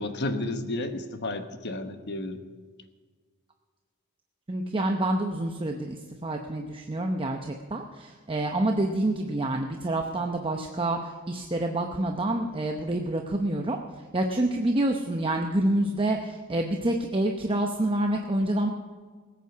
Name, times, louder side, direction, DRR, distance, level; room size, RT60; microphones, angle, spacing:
voice 1, 0.0-2.4, left 2 dB, 50° left, 8 dB, 1.1 m, -32 dB
voice 2, 4.5-13.8 14.1-18.7, right 1 dB, 25° right, 3 dB, 0.8 m, -27 dB
19.5 x 8.5 x 6.0 m, 1.5 s
head